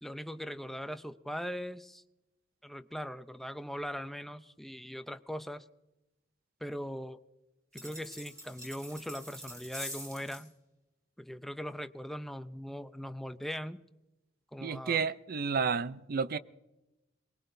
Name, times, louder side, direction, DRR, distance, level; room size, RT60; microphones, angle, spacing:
voice 1, 0.0-2.0 2.6-5.6 6.6-7.2 7.7-10.5 11.2-13.8 14.5-15.0, equal, ahead, 0.5 m, -40 dB
sound 1, 7.7-10.5, equal, 20° right, 4.0 m, -45 dB
voice 2, 14.6-16.4, right 5 dB, 50° right, 0.5 m, -31 dB
23.5 x 20.5 x 2.7 m
head